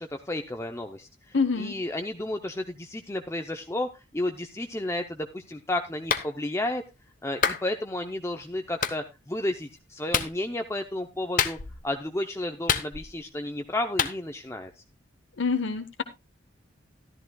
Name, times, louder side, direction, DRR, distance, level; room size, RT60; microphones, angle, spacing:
voice 1, 0.0-6.8 7.2-11.6 11.8-14.8, left 1 dB, 15° left, 5 dB, 0.6 m, -32 dB
voice 2, 1.3-1.7 15.4-16.0, left 4 dB, 65° left, 7 dB, 0.9 m, -26 dB
Clapping, 6.1-6.3 7.4-7.6 8.8-9.0 10.1-10.3 11.4-11.8 12.7-13.2 14.0-14.2, left 7 dB, 40° left, 0.9 m, -26 dB
13.5 x 12.5 x 2.3 m, 0.24 s
head